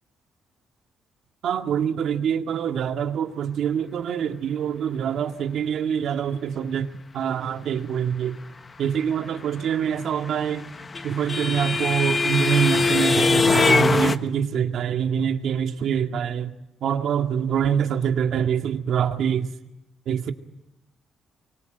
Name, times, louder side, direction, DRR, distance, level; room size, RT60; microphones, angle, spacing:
voice 1, 1.4-6.9 7.1-8.4 8.8-10.7 11.0-16.5 16.8-19.5 20.1-20.3, right 8 dB, 70° right, 2.0 m, -25 dB
sound 1, 10.3-14.2, left 4 dB, 30° left, 1.2 m, -21 dB
25.0 x 24.5 x 9.3 m
cardioid pair, 90°, 0 cm